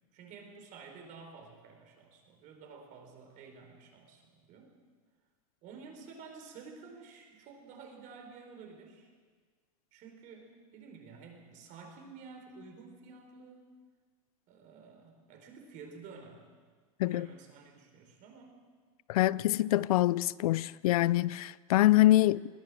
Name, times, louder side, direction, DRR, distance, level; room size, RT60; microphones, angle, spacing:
voice 1, 0.1-4.8 5.6-9.1 9.9-13.7 14.5-16.5 17.0-18.6, right 5 dB, 45° right, 4.7 m, -51 dB
voice 2, 19.1-22.5, left 16 dB, 75° left, 0.5 m, -25 dB
21.0 x 17.5 x 7.8 m
supercardioid pair, 135°, 19 cm